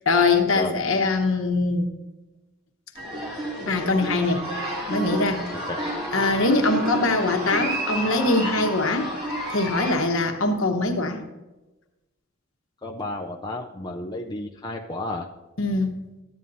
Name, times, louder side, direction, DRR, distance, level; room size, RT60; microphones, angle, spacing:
voice 1, 0.0-1.8 3.7-4.5 4.9-5.4 6.1-9.1 9.5-11.2 15.6-15.9, left 3 dB, 65° left, 4 dB, 1.2 m, -22 dB
sound 1, 2.9-9.9, right 1 dB, 25° right, 2.6 m, -30 dB
voice 2, 12.8-15.3, left 2 dB, 20° left, 0 dB, 0.5 m, -32 dB
14.0 x 9.2 x 2.7 m, 1.1 s
head